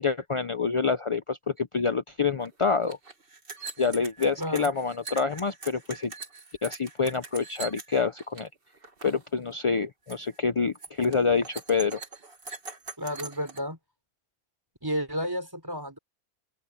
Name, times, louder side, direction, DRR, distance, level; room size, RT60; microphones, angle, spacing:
voice 1, 0.0-3.0 3.8-6.1 6.6-8.5 9.0-12.0, left 5 dB, 40° left, 0.4 m, -27 dB
sound 1, 2.4-2.5 2.7-8.5 8.7-9.2 9.5-9.8 10.1-10.4 10.7-13.6, right 4 dB, 40° right, 2.2 m, -42 dB
voice 2, 4.4-4.7 13.0-13.8 14.8-16.0, equal, 15° right, 3.5 m, -31 dB
omnidirectional pair, 1.5 m